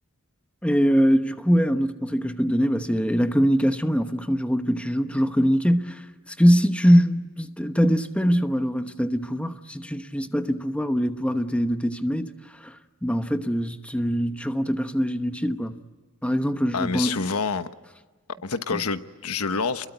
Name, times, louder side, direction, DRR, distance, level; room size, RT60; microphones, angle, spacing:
voice 1, 0.6-12.3 12.6-12.7 13.0-15.8 16.2-17.1 18.7-18.8, equal, 5° left, 1.0 m, -23 dB
voice 2, 16.7-17.7 18.4-19.9, left 4 dB, 85° left, 1.2 m, -27 dB
29.0 x 22.0 x 9.2 m
head